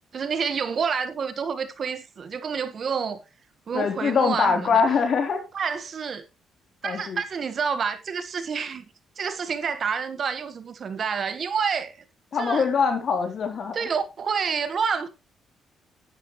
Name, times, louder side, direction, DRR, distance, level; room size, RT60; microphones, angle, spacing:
voice 1, 0.1-3.2 3.7-4.8 5.5-6.2 6.8-8.8 9.2-12.0 12.4-12.7 13.7-15.1, right 6 dB, 50° right, 1.5 m, -28 dB
voice 2, 3.7-5.4 6.8-7.2 12.3-13.9, left 5 dB, 55° left, 4.0 m, -23 dB
12.5 x 11.0 x 3.2 m
cardioid pair, 90°, 0 cm